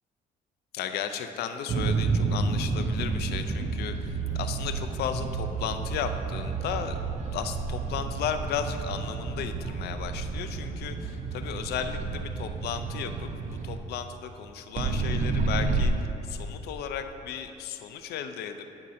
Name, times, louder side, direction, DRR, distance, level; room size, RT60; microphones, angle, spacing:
voice 1, 0.7-7.0 7.3-18.7, left 8 dB, 70° left, 8 dB, 0.5 m, -35 dB
sound 1, 1.7-13.8 14.8-15.9, right 4 dB, 45° right, 0.6 m, -30 dB
9.6 x 3.7 x 4.2 m, 2.8 s
cardioid pair, 110°, 17 cm